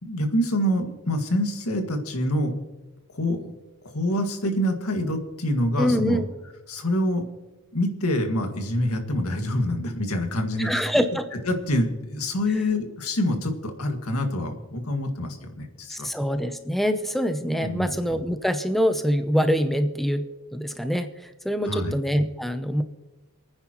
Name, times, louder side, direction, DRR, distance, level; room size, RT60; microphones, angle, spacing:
voice 1, 0.0-2.5 3.1-3.6 3.8-6.2 6.7-7.2 7.7-10.9 11.5-16.1 17.6-17.9 21.6-21.9, left 1 dB, 90° left, 4 dB, 1.9 m, -26 dB
voice 2, 5.8-6.3 10.6-11.2 15.9-20.2 20.5-22.8, equal, ahead, 7 dB, 0.6 m, -24 dB
27.5 x 9.8 x 3.0 m, 1.2 s
head